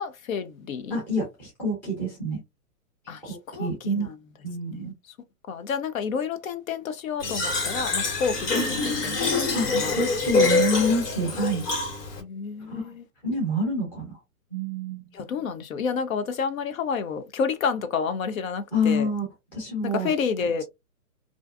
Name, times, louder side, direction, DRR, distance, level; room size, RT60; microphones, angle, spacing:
voice 1, 0.0-1.0 3.1-4.2 4.7-5.1 5.5-10.0 10.3-10.5 12.2-13.1 15.1-19.1 19.8-20.6, left 6 dB, 60° left, 0.5 m, -30 dB
voice 2, 0.9-2.4 3.3-4.1 4.4-4.9 9.5-9.7 9.9-11.7 12.6-12.9 13.2-14.2 14.5-15.1 18.7-19.3 19.5-20.1, equal, 5° left, 0.5 m, -27 dB
Fill (with liquid), 7.2-12.2, left 4 dB, 80° left, 1.5 m, -25 dB
2.5 x 2.3 x 2.3 m
hypercardioid pair, 150°, 46 cm